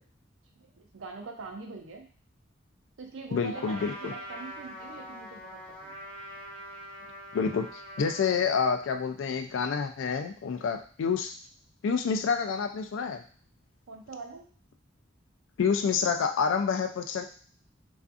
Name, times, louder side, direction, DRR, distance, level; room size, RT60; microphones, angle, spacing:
voice 1, 0.7-2.1 3.0-5.9 13.9-14.5, right 3 dB, 85° right, 3 dB, 0.5 m, -43 dB
voice 2, 3.3-4.1 7.3-11.4 11.8-13.2 15.6-17.2, left 6 dB, 85° left, 6 dB, 0.4 m, -28 dB
Trumpet, 3.5-8.4, equal, 5° left, 0.6 m, -43 dB
2.5 x 2.4 x 2.4 m, 0.43 s
head